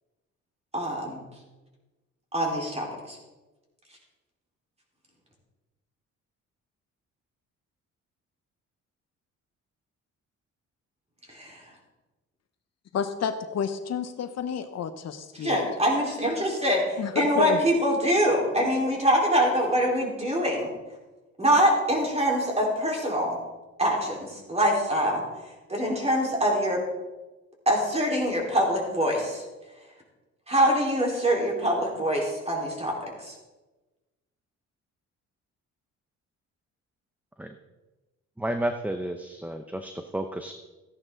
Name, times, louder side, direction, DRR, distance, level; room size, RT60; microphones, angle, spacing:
voice 1, 0.7-1.2 2.3-3.2 11.3-11.7 15.4-20.7 21.4-23.4 23.8-26.8 27.7-29.4 30.5-33.3, equal, 20° right, -1 dB, 4.2 m, -24 dB
voice 2, 12.9-15.7 17.0-17.6, left 7 dB, 60° left, 9 dB, 0.9 m, -30 dB
voice 3, 38.4-40.5, right 1 dB, 5° right, 7 dB, 0.7 m, -31 dB
14.5 x 10.5 x 3.9 m, 1.1 s
cardioid pair, 90°, 30 cm